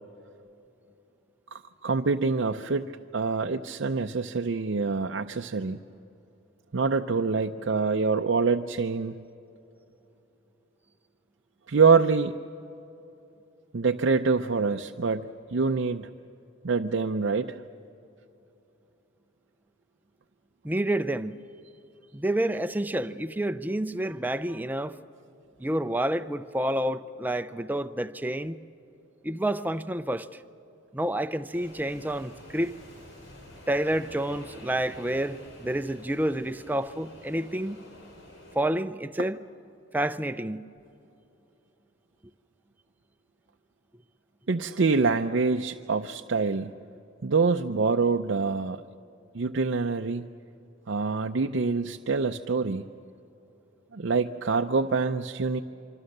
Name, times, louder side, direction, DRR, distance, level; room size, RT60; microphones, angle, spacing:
voice 1, 1.5-5.8 6.7-9.1 11.7-12.3 13.7-16.1 16.6-17.6 44.5-46.7 47.2-48.8 49.3-50.3 50.9-52.8 53.9-55.6, right 4 dB, 60° right, 0.5 m, -25 dB
voice 2, 20.6-21.4 22.1-25.0 25.6-28.6 29.2-30.3 30.9-32.7 33.7-37.8 38.5-39.4 39.9-40.6, right 1 dB, 10° right, 0.5 m, -29 dB
sound 1, 31.5-38.6, left 1 dB, 65° left, 4.9 m, -49 dB
26.0 x 25.0 x 6.6 m
head